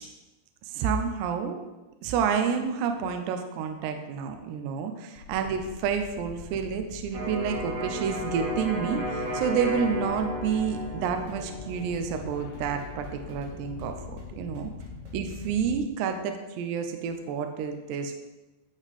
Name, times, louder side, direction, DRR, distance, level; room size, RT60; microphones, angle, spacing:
voice 1, 0.7-1.6 2.0-14.7 15.1-18.2, right 6 dB, 80° right, 6 dB, 2.5 m, -29 dB
sound 1, 5.2-15.8, left 7 dB, 80° left, 2.5 m, -44 dB
Electric guitar, 7.1-14.9, equal, 40° right, 3.6 m, -35 dB
sound 2, 7.5-15.6, left 3 dB, 60° right, 2.5 m, -48 dB
11.0 x 5.4 x 4.2 m, 1.1 s
omnidirectional pair, 5.6 m